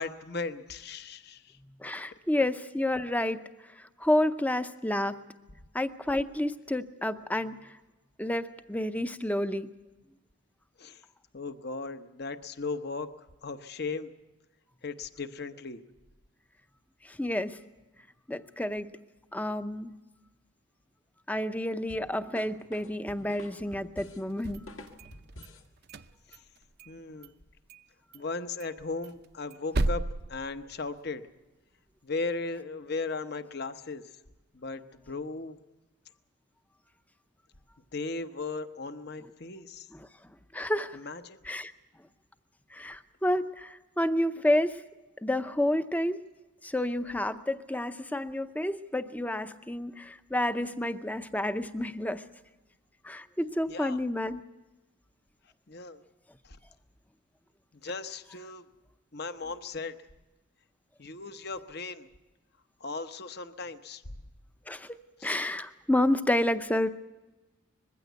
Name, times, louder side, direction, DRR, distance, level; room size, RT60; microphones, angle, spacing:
voice 1, 0.0-1.6 10.8-11.0 11.3-14.1 14.8-15.8 26.9-27.3 28.1-31.2 32.0-34.0 34.5-35.7 37.9-39.9 40.9-41.4 53.7-54.0 55.7-56.0 56.4-56.6 57.8-58.6 59.1-60.0 61.0-62.1 62.8-64.0 65.2-65.3, left 3 dB, 50° left, 10 dB, 0.9 m, -37 dB
voice 2, 1.8-3.4 4.0-5.2 5.7-7.6 8.2-9.7 17.0-17.6 18.3-19.0 19.3-19.9 21.3-24.6 39.9-40.1 40.5-41.0 41.4-41.7 42.7-44.8 45.2-46.2 46.6-52.2 53.0-54.4 64.7-64.9 65.2-66.9, left 1 dB, 5° left, 11 dB, 0.6 m, -29 dB
sound 1, 21.9-25.7, left 1 dB, 75° left, 1.8 m, -48 dB
sound 2, 24.3-25.5 25.8-27.0 27.2-27.3 27.7-27.9 28.1-28.2 28.6-31.2, right 2 dB, 50° right, 0.6 m, -34 dB
21.0 x 15.5 x 8.1 m, 1.1 s
head